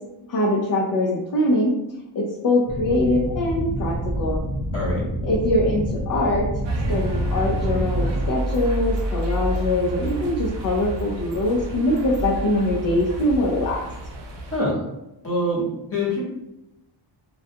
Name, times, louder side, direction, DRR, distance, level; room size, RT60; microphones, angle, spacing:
voice 1, 0.3-1.7 2.2-4.4 5.2-6.5 6.9-13.8, left 1 dB, 50° left, -4 dB, 0.5 m, -23 dB
sound 1, 2.7-8.3, right 1 dB, 15° right, 0.5 m, -28 dB
sound 2, 6.6-14.6, equal, 70° right, 0.6 m, -29 dB
voice 2, 14.5-14.8 15.2-15.6 15.9-16.2, left 1 dB, 30° left, -6 dB, 1.1 m, -24 dB
2.3 x 2.2 x 2.7 m, 0.92 s
wide cardioid pair, 115°, 44 cm